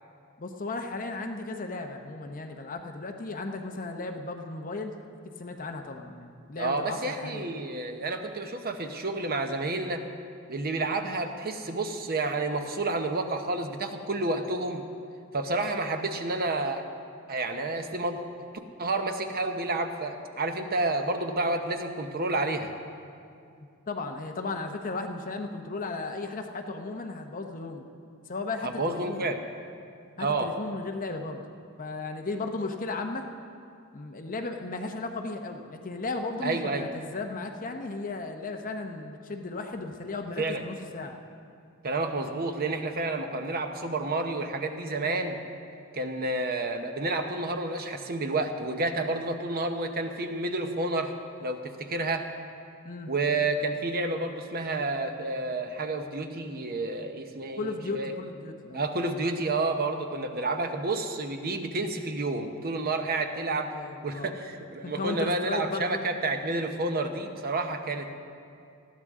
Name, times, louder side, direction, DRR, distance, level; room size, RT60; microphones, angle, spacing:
voice 1, 0.4-4.9 5.4-7.5 23.9-27.9 28.3-29.3 30.2-31.4 31.8-33.3 33.9-41.2 52.8-53.1 57.6-58.8 63.6-64.3 64.8-66.0, left 3 dB, 40° left, 5 dB, 0.8 m, -35 dB
voice 2, 6.6-10.0 10.5-14.8 15.3-16.8 17.3-18.2 18.8-22.7 28.6-29.4 30.2-30.5 36.4-36.9 40.4-40.6 41.8-45.4 45.9-51.1 51.4-52.3 53.1-58.1 58.7-63.7 64.0-68.1, right 2 dB, 45° right, 6 dB, 0.9 m, -30 dB
20.0 x 14.0 x 3.7 m, 2.4 s
head